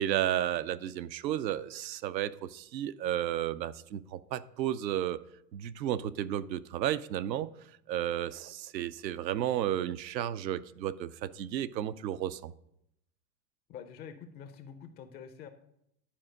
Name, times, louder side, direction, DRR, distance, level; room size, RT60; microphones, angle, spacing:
voice 1, 0.0-5.2 5.5-7.5 7.9-12.5, right 11 dB, 85° right, 14 dB, 0.6 m, -33 dB
voice 2, 13.7-15.5, left 7 dB, 20° left, 9 dB, 0.4 m, -46 dB
10.5 x 4.4 x 6.4 m, 0.78 s
hypercardioid pair, 120°, 50 cm